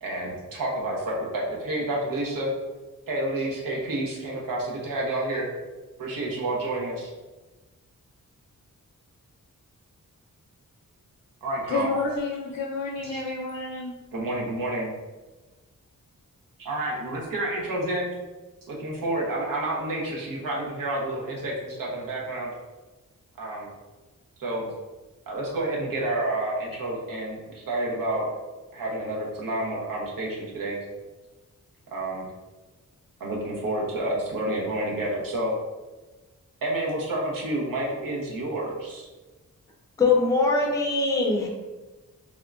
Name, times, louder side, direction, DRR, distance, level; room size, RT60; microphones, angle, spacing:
voice 1, 0.0-2.5 3.1-5.5 6.0-7.1 11.4-11.9 13.0-13.2 14.1-14.9 16.6-18.1 18.7-22.5 23.4-23.7 24.4-24.7 25.3-28.3 28.7-30.8 31.9-32.3 33.2-35.5 36.6-39.0, right 1 dB, 85° right, -3 dB, 0.8 m, -29 dB
voice 2, 11.7-13.9, left 3 dB, 75° left, -3 dB, 0.5 m, -29 dB
voice 3, 40.0-41.5, left 3 dB, 10° left, -2 dB, 0.4 m, -22 dB
3.5 x 2.2 x 2.3 m, 1.2 s
wide cardioid pair, 130°, 33 cm